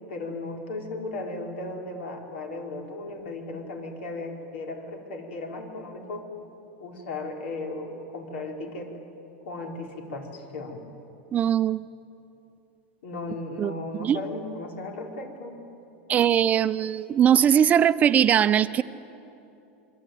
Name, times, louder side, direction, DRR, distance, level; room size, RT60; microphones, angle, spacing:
voice 1, 0.1-6.3 6.8-8.9 9.4-10.8 13.0-15.6, left 2 dB, 85° left, 2 dB, 4.8 m, -36 dB
voice 2, 11.3-11.9 13.6-13.7 14.0-14.2 16.1-18.8, right 9 dB, 25° right, 13 dB, 0.6 m, -20 dB
27.5 x 23.5 x 9.3 m, 2.8 s
supercardioid pair, 145°, 6 cm